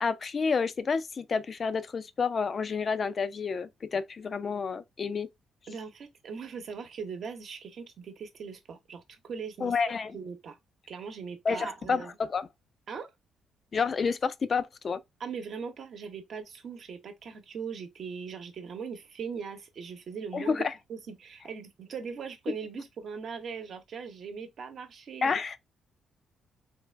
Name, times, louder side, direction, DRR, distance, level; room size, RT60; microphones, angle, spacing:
voice 1, 0.0-5.3 9.6-10.2 11.5-12.5 13.7-15.0 20.3-20.7 25.2-25.6, left 5 dB, 40° left, 0.3 m, -29 dB
voice 2, 5.7-10.6 10.9-12.1 12.9-13.1 15.2-25.4, right 6 dB, 60° right, 0.9 m, -40 dB
3.3 x 2.4 x 3.2 m
cardioid pair, 90°, 0 cm